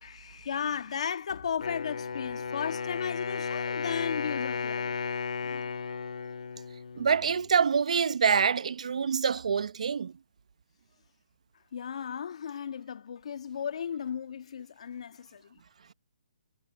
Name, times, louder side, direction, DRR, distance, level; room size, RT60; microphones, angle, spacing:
voice 1, 0.0-5.0 5.4-5.6 11.7-15.6, left 7 dB, 60° left, 1.8 m, -35 dB
Wind instrument woodwind instrument, 1.6-7.6, left 5 dB, 75° left, 2.4 m, -34 dB
voice 2, 7.0-10.1, right 6 dB, 65° right, 0.8 m, -26 dB
hypercardioid pair, 160°, 4 cm